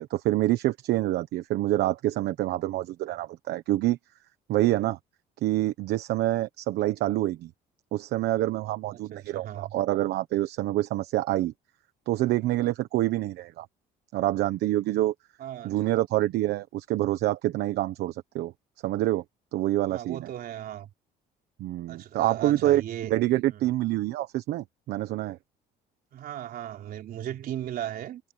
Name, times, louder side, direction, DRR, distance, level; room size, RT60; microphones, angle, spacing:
voice 1, 0.0-4.0 4.5-5.0 5.4-7.5 7.9-11.5 12.1-13.7 14.1-15.1 15.6-18.5 18.8-19.2 19.5-20.3 21.6-22.8 23.1-25.4, right 15 dB, 80° right, 1.1 m, -26 dB
voice 2, 8.9-9.7 15.4-15.9 19.9-20.9 21.9-23.2 23.5-23.6 26.1-28.2, right 11 dB, 65° right, 3.9 m, -37 dB
cardioid pair, 110°, 17 cm